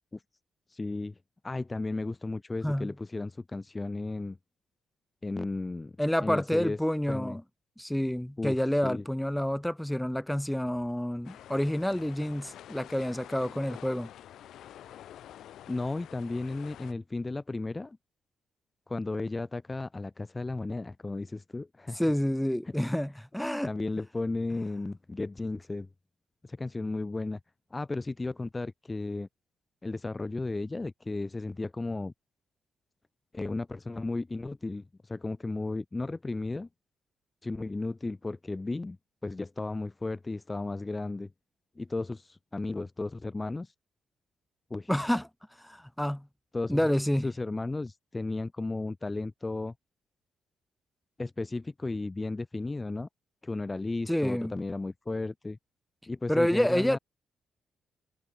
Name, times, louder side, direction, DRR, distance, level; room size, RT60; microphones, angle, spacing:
voice 1, 0.7-1.2 1.4-4.4 5.2-5.9 6.2-6.8 7.1-7.4 8.4-9.0 15.7-18.0 18.9-22.0 22.6-22.7 23.6-25.9 26.4-27.4 27.7-29.3 29.8-32.1 33.3-36.7 37.4-39.0 39.2-41.3 41.8-43.7 44.7-44.9 46.5-46.8 47.2-49.7 51.2-53.1 53.4-55.6 56.1-57.0, left 2 dB, 20° left, 6.8 m, -34 dB
voice 2, 6.0-7.4 7.8-14.1 21.9-23.7 44.9-45.3 45.6-46.3 46.7-47.3 54.1-54.5 56.3-57.0, equal, 5° left, 1.6 m, -28 dB
sound 1, 11.2-16.9, left 11 dB, 75° left, 6.0 m, -48 dB
cardioid pair, 90°, 0 cm